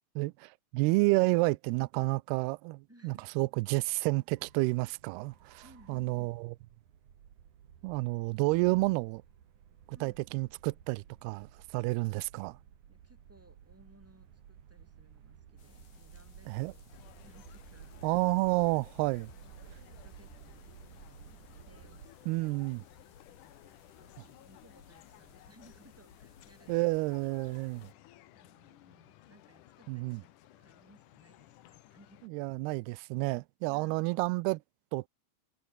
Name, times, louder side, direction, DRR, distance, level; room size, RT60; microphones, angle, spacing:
voice 1, 0.2-5.6 5.9-6.5 7.8-9.2 10.0-12.6 16.5-16.7 18.0-19.3 22.3-22.8 26.7-27.9 29.9-30.2 32.3-34.6 34.9-35.1, right 23 dB, 85° right, 2.3 m, -30 dB
voice 2, 2.9-3.3 5.6-6.3 9.9-10.3 12.9-18.3 19.5-21.4 21.7-22.3 23.4-27.0 27.8-32.3 33.7-34.2, right 1 dB, 5° right, 3.7 m, -62 dB
sound 1, 4.3-22.1, right 9 dB, 50° right, 3.0 m, -55 dB
sound 2, 15.6-27.9, left 5 dB, 55° left, 7.0 m, -60 dB
sound 3, 16.9-32.3, left 14 dB, 80° left, 1.8 m, -58 dB
omnidirectional pair, 5.2 m